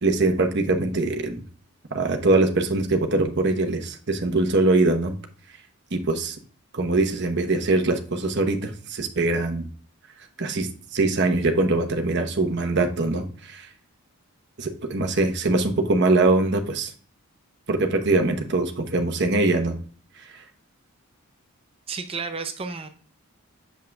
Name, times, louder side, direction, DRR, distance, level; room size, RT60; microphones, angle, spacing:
voice 1, 0.0-1.4 1.9-5.1 5.9-6.4 6.7-9.7 10.4-13.7 14.6-16.9 17.7-19.8 20.2-20.4, right 2 dB, 50° right, 4 dB, 1.0 m, -22 dB
voice 2, 21.9-22.9, right 4 dB, 25° right, 7 dB, 0.5 m, -32 dB
7.5 x 5.5 x 2.3 m, 0.44 s
head